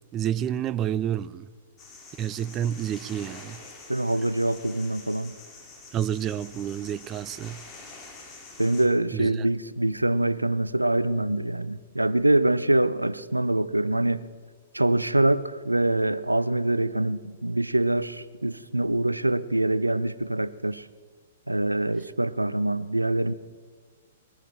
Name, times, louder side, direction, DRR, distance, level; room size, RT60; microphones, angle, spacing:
voice 1, 0.1-1.5 2.2-3.6 5.9-7.6 9.1-9.5, right 10 dB, 25° right, 0.4 m, -29 dB
sound 1, 1.8-8.9, left 3 dB, 25° left, 2.7 m, -46 dB
voice 2, 3.9-5.3 8.6-14.2 14.7-20.9 21.5-23.3, right 1 dB, 85° right, 0.5 m, -24 dB
20.5 x 15.0 x 4.5 m
figure-of-eight pair, 110°, 0 cm